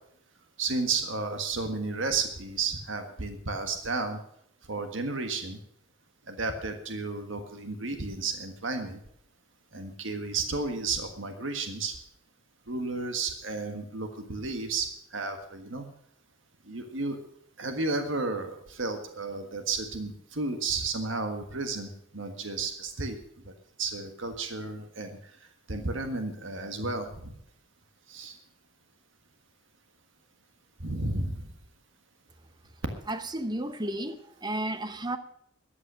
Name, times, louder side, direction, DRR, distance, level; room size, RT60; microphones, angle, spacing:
voice 1, 0.6-4.2 4.7-5.6 6.3-9.0 9.7-11.9 12.7-14.9 15.1-15.8 16.7-17.2 17.6-21.9 22.1-23.1 23.8-25.1 25.7-27.1 28.1-28.3 30.8-31.3, right 3 dB, 70° right, 6 dB, 1.6 m, -32 dB
voice 2, 33.1-35.2, right 1 dB, 20° right, 11 dB, 0.9 m, -33 dB
13.5 x 9.7 x 6.3 m, 0.70 s
head